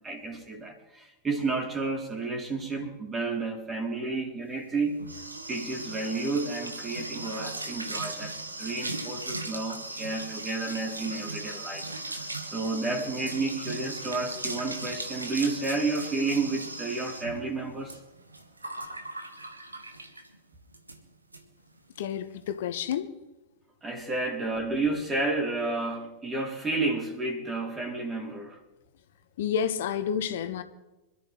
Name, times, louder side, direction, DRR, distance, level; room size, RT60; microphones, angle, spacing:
voice 1, 0.0-5.0 5.5-18.0 23.8-28.6, right 3 dB, 20° right, 3.5 m, -31 dB
sound 1, 4.6-20.4 20.7-21.0 21.3-21.4 21.7-22.1, right 2 dB, 85° right, 1.7 m, -38 dB
voice 2, 22.0-23.1 29.4-30.6, left 8 dB, 60° left, 1.3 m, -30 dB
26.0 x 13.5 x 3.2 m
figure-of-eight pair, 90°, 0 cm